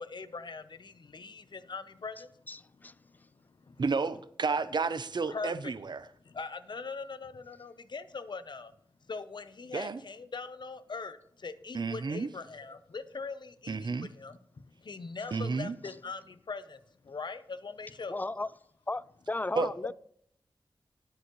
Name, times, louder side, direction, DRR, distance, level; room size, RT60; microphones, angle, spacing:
voice 1, 0.0-2.3 2.8-3.8 5.3-5.7 6.2-8.7 9.1-16.8 17.0-18.2, left 4 dB, 65° left, 0.8 m, -42 dB
voice 2, 2.5-2.9 18.1-18.5 18.9-19.9, left 2 dB, 20° left, 0.4 m, -35 dB
voice 3, 3.8-6.0 9.7-10.0 11.7-12.3 13.7-14.1 15.3-15.7 19.6-19.9, right 4 dB, 65° right, 0.6 m, -31 dB
20.0 x 6.8 x 3.1 m
wide cardioid pair, 60°, 8 cm